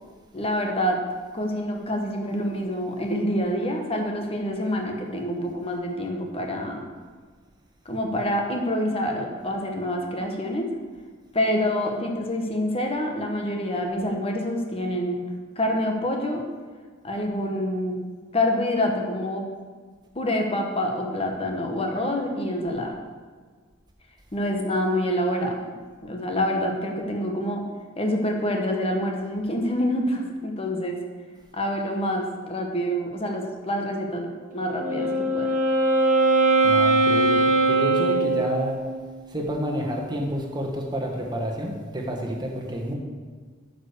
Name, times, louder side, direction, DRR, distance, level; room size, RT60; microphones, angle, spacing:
voice 1, 0.3-1.0 1.3-6.9 7.8-10.7 11.3-15.3 15.6-16.4 17.0-18.0 18.3-19.5 20.1-22.9 24.3-25.6 26.0-27.6 28.0-31.0 31.5-35.5, left 1 dB, 30° left, 2 dB, 1.2 m, -26 dB
Wind instrument woodwind instrument, 34.6-39.0, right 2 dB, 45° right, 1.2 m, -21 dB
voice 2, 36.6-38.8 39.3-42.9, equal, 20° right, 0 dB, 1.4 m, -29 dB
9.0 x 5.3 x 6.6 m, 1.5 s
head